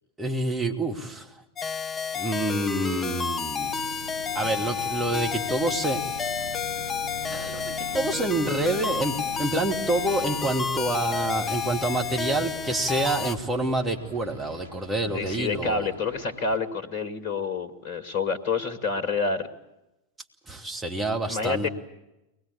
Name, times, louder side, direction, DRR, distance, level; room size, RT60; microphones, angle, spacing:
voice 1, 0.2-1.3 2.1-3.7 4.3-6.0 7.3-15.9 20.5-21.7, right 2 dB, 15° right, 2 dB, 2.8 m, -27 dB
sound 1, 1.6-13.3, left 6 dB, 20° left, 0.8 m, -31 dB
sound 2, 3.6-16.6, right 1 dB, 75° right, 2.1 m, -42 dB
voice 2, 15.1-19.5 21.3-21.7, left 4 dB, 45° left, 11 dB, 2.3 m, -28 dB
23.5 x 20.0 x 8.7 m, 0.93 s
figure-of-eight pair, 90°, 0 cm